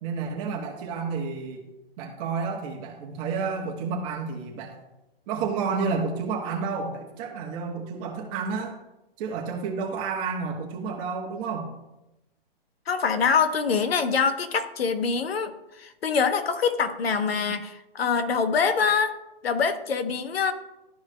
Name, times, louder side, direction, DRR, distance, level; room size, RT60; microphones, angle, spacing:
voice 1, 0.0-1.7 2.0-4.8 5.3-8.8 9.2-11.7, right 5 dB, 35° right, -1 dB, 1.2 m, -30 dB
voice 2, 12.9-15.5 15.8-19.2 19.4-20.5, left 6 dB, 80° left, 9 dB, 1.0 m, -24 dB
12.5 x 4.6 x 2.2 m, 0.95 s
hypercardioid pair, 135°, 30 cm